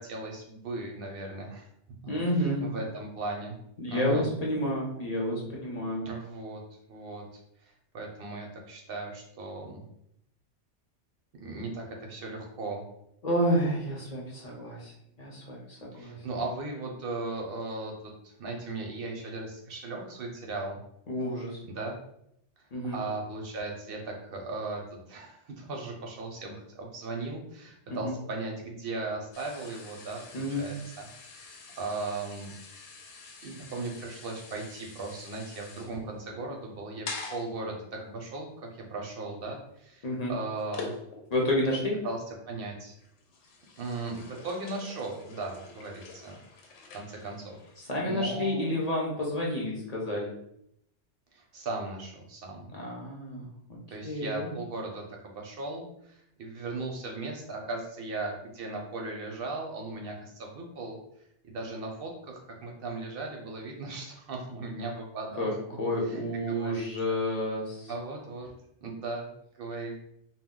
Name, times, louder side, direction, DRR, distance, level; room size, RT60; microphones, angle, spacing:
voice 1, 0.0-1.7 2.4-3.6 3.9-4.3 6.1-6.6 6.9-7.2 7.6-9.8 11.4-12.8 15.9-20.8 21.6-22.0 22.9-24.8 25.1-32.5 33.4-38.5 38.7-40.9 42.0-42.9 43.8-46.4 46.9-47.6 48.0-48.6 51.3-52.7 53.9-61.0 61.5-65.6 66.1-67.1 67.9-68.5 68.8-69.3 69.6-70.0, right 3 dB, 60° right, 1 dB, 0.7 m, -37 dB
voice 2, 2.1-2.7 3.8-6.1 13.2-14.9 15.2-16.2 21.1-21.6 22.7-23.0 27.9-28.1 30.3-30.7 40.0-40.3 41.3-41.9 47.8-50.3 52.7-53.5 54.0-54.5 65.4-65.5 65.8-67.9, equal, 45° left, -3 dB, 0.5 m, -30 dB
sound 1, 29.3-41.5 41.9-42.3 42.8-47.8, left 4 dB, 90° left, 0.9 m, -46 dB
2.2 x 2.2 x 3.5 m, 0.75 s
omnidirectional pair, 1.2 m